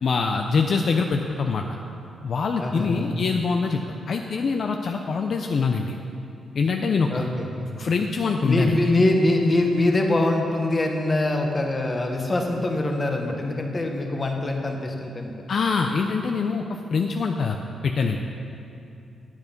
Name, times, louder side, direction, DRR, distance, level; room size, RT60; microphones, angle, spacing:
voice 1, 0.0-1.6 2.2-3.8 4.1-6.0 6.5-7.3 7.8-8.8 15.5-16.6 16.9-17.6 17.8-18.2, left 4 dB, 55° left, 3 dB, 0.5 m, -24 dB
voice 2, 2.6-3.2 7.1-7.8 8.4-15.3, left 2 dB, 25° left, 2 dB, 1.1 m, -23 dB
9.4 x 8.4 x 5.3 m, 2.6 s
cardioid pair, 120°, 0 cm